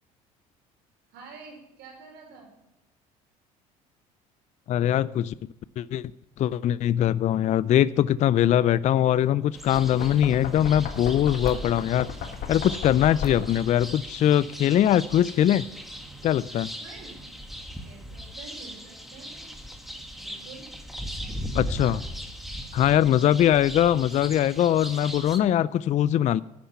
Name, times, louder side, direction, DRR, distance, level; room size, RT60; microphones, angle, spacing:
voice 1, 1.1-2.5 16.8-17.3 17.8-19.5 20.2-20.7 21.6-22.0 22.9-23.3, right 4 dB, 65° right, 1 dB, 5.2 m, -47 dB
voice 2, 4.7-5.3 5.8-6.1 6.4-12.1 12.5-15.7 16.2-16.7 21.5-22.0 22.7-26.4, left 11 dB, 40° left, 18 dB, 0.4 m, -22 dB
sound 1, 9.5-25.4, equal, ahead, 1.8 m, -39 dB
Knock, 9.6-13.7, left 6 dB, 60° left, 1.5 m, -35 dB
10.5 x 9.9 x 5.8 m, 0.90 s
hypercardioid pair, 70°, 18 cm